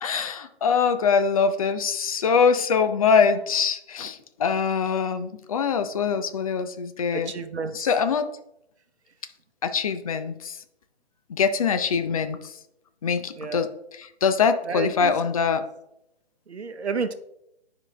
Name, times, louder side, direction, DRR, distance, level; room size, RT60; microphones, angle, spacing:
voice 1, 0.0-7.3 7.7-8.3 9.6-10.6 11.3-12.5 13.0-15.6, left 6 dB, 35° left, 10 dB, 0.6 m, -23 dB
voice 2, 7.1-7.9 13.4-13.7 14.7-15.1 16.5-17.1, right 5 dB, 85° right, 10 dB, 0.8 m, -30 dB
9.9 x 5.1 x 3.2 m, 0.82 s
figure-of-eight pair, 145°, 32 cm